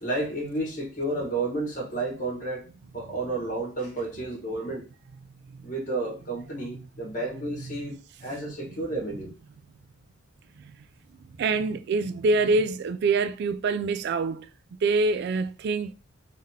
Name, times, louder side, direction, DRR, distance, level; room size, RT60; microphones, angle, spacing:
voice 1, 0.0-2.6 2.9-4.8 5.6-9.3, right 2 dB, 40° left, 1.4 m, -31 dB
voice 2, 11.4-14.5 14.8-15.9, right 3 dB, 55° right, 0.3 m, -25 dB
3.7 x 2.8 x 3.5 m
head